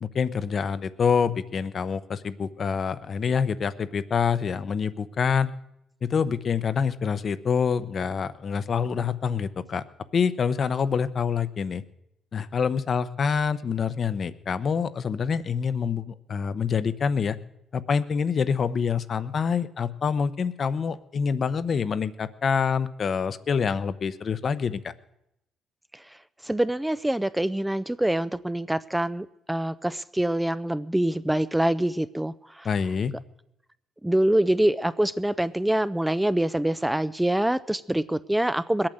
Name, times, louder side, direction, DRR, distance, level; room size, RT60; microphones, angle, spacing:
voice 1, 0.0-5.5 6.0-9.8 10.1-11.8 12.3-17.4 17.7-24.9 32.6-33.1, left 6 dB, 50° left, 14 dB, 0.9 m, -26 dB
voice 2, 26.4-32.7 34.0-38.9, right 1 dB, 5° right, 15 dB, 0.5 m, -25 dB
20.5 x 8.8 x 7.9 m, 0.84 s
cardioid pair, 90°, 0 cm